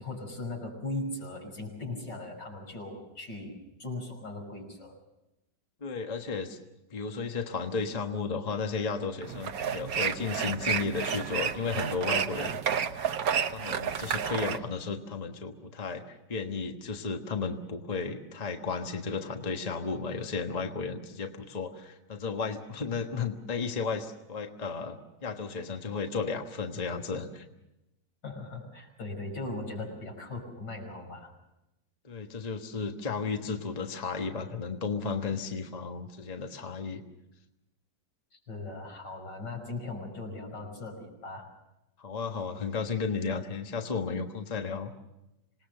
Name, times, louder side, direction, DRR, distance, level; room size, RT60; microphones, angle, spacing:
voice 1, 0.0-3.5 3.8-5.0 28.2-31.3 38.3-41.5, left 2 dB, 75° left, 0 dB, 6.4 m, -38 dB
voice 2, 5.8-6.6 6.9-12.6 13.5-27.4 32.0-37.0 42.0-44.9, left 5 dB, 25° left, 4 dB, 1.3 m, -34 dB
sound 1, 9.2-14.6, right 7 dB, 60° right, 1.3 m, -31 dB
26.5 x 19.5 x 6.7 m, 0.92 s
omnidirectional pair, 2.0 m